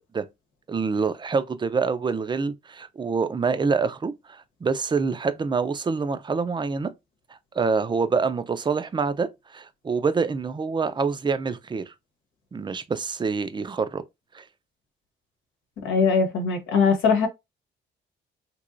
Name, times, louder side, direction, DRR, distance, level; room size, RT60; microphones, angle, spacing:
voice 1, 0.7-4.1 4.6-6.9 7.5-11.9 12.5-14.0 14.3-14.4, right 5 dB, 25° right, 0.5 m, -26 dB
voice 2, 15.8-17.3, left 5 dB, 80° left, 1.0 m, -21 dB
3.1 x 2.9 x 2.5 m
cardioid pair, 90°, 20 cm